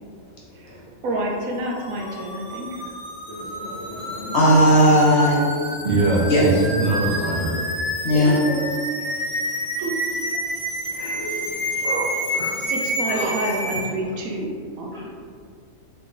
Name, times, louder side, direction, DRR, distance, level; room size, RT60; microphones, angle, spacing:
voice 1, 1.0-2.9 8.1-8.6 9.0-9.1 9.8-10.0 11.0-11.2 12.6-15.1, right 1 dB, 80° right, -1 dB, 1.1 m, -29 dB
sound 1, 1.6-13.9, equal, 15° left, 1.3 m, -29 dB
voice 2, 3.3-5.5 6.3-6.4 8.0-8.4 10.9-11.5, equal, 55° left, -6 dB, 1.2 m, -19 dB
voice 3, 5.8-7.6 11.8-12.6 13.1-13.3 14.9-15.1, right 2 dB, 60° right, -5 dB, 0.5 m, -23 dB
3.6 x 3.0 x 3.6 m, 2.1 s
omnidirectional pair, 1.4 m